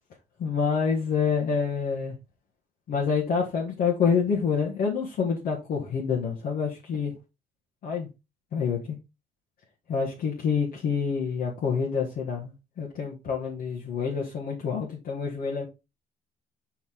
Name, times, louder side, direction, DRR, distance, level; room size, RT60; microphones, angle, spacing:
voice 1, 0.4-2.2 2.9-7.1 7.8-8.1 8.5-9.0 9.9-15.7, left 6 dB, 60° left, 1.6 m, -27 dB
5.4 x 4.9 x 3.6 m
cardioid pair, 110°, 17 cm